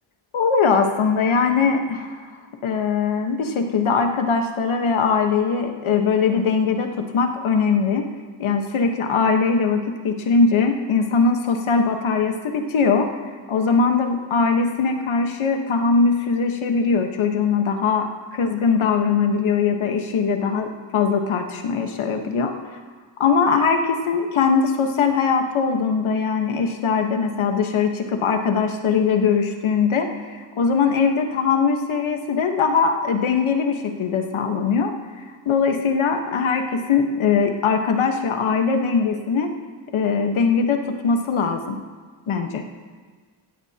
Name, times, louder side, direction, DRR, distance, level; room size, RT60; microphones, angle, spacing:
voice 1, 0.3-2.2 2.6-8.1 8.4-13.1 13.5-18.1 18.3-22.5 23.2-34.9 35.4-39.5 39.9-41.8 42.3-42.6, left 5 dB, 85° left, 4 dB, 1.4 m, -21 dB
16.0 x 16.0 x 2.9 m, 1.5 s
cardioid pair, 85°, 47 cm